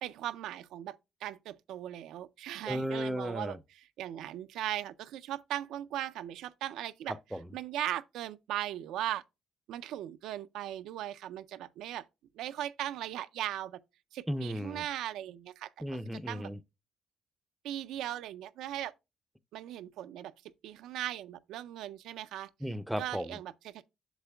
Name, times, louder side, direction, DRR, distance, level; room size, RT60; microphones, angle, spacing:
voice 1, 0.0-7.2 7.5-9.2 9.7-12.1 12.4-13.8 14.1-15.7 16.3-16.5 17.6-18.9 19.5-20.3 20.6-22.5 23.0-23.9, right 12 dB, 85° right, 0.4 m, -38 dB
voice 2, 2.7-3.6 7.1-7.5 14.3-14.8 15.8-16.6 22.6-23.4, equal, 5° right, 0.5 m, -35 dB
8.0 x 6.6 x 2.2 m
cardioid pair, 90°, 0 cm